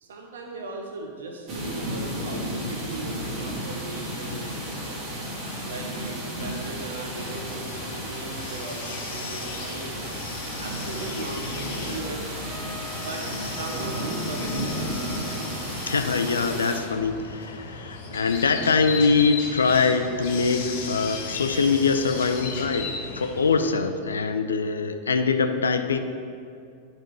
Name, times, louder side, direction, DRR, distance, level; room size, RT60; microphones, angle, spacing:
voice 1, 0.0-5.0 5.6-10.1 10.6-12.2 12.9-14.8, right 2 dB, 65° right, 2 dB, 0.8 m, -38 dB
sound 1, 1.5-16.8, right 1 dB, 40° right, 1.7 m, -33 dB
sound 2, 7.1-23.7, left 4 dB, 50° left, 1.0 m, -36 dB
Trumpet, 12.4-17.3, left 3 dB, 20° left, 0.5 m, -45 dB
voice 2, 15.8-26.0, left 4 dB, 70° left, 8 dB, 0.4 m, -23 dB
10.5 x 5.1 x 3.1 m, 2.4 s
figure-of-eight pair, 90°, 0 cm